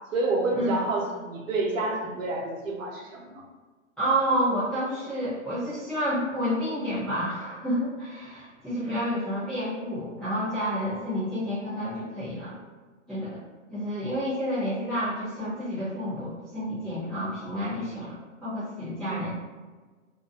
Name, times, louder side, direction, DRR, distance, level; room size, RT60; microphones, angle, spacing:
voice 1, 0.1-3.4 8.8-9.1 19.0-19.3, right 2 dB, 85° right, -1 dB, 0.8 m, -29 dB
voice 2, 4.0-12.5 13.1-13.3 13.7-19.3, equal, ahead, -15 dB, 0.4 m, -29 dB
2.6 x 2.0 x 2.5 m, 1.4 s
hypercardioid pair, 130°, 38 cm